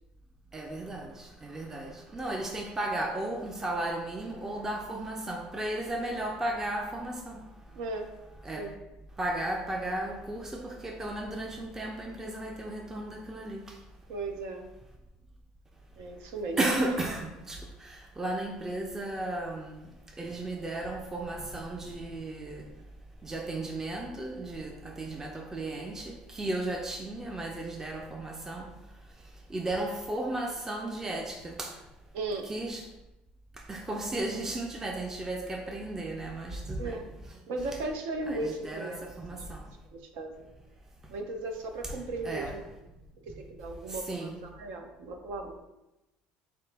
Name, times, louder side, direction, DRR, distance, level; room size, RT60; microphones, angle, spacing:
voice 1, 0.5-7.4 8.4-8.7 9.2-13.8 16.6-19.9 20.2-22.7 23.2-28.7 29.5-31.8 32.4-32.8 33.6-37.0 38.3-39.7 42.2-42.6 43.9-44.4, right 1 dB, 15° right, 1 dB, 0.5 m, -34 dB
voice 2, 7.7-8.1 8.5-8.7 14.1-14.7 16.0-16.6 32.1-32.5 36.8-37.1 37.5-39.1 39.9-40.5 41.1-42.6 43.2-45.6, right 2 dB, 80° right, 5 dB, 0.6 m, -36 dB
4.1 x 2.9 x 3.4 m, 0.97 s
cardioid pair, 110°, 3 cm